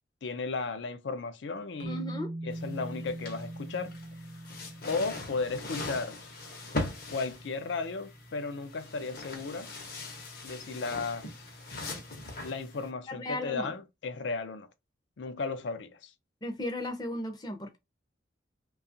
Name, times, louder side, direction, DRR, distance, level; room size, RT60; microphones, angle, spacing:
voice 1, 0.2-2.0 2.4-4.0 4.8-6.2 7.1-9.7 10.4-11.3 12.4-14.7 15.2-16.1, left 4 dB, 75° left, 0.5 m, -35 dB
sound 1, 1.8-6.1, right 1 dB, 45° right, 0.5 m, -41 dB
voice 2, 1.9-2.3 13.2-13.7 16.4-17.8, left 1 dB, 20° left, 0.5 m, -35 dB
sound 2, 2.5-12.9, left 2 dB, 50° left, 0.8 m, -41 dB
2.8 x 2.3 x 2.6 m
head